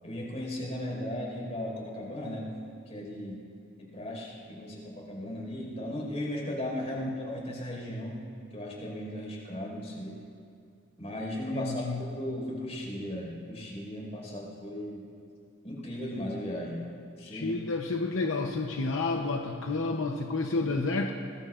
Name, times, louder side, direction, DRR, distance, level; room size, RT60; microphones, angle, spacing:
voice 1, 0.0-2.5 2.9-3.4 3.8-8.2 8.5-10.2 11.0-11.8 12.1-15.0 15.6-16.8 17.2-17.6 20.7-20.8, left 1 dB, 30° left, -2 dB, 5.0 m, -36 dB
voice 2, 11.5-12.0 17.2-21.1, left 3 dB, 70° left, 2 dB, 0.8 m, -30 dB
25.5 x 21.0 x 2.5 m, 2.4 s
head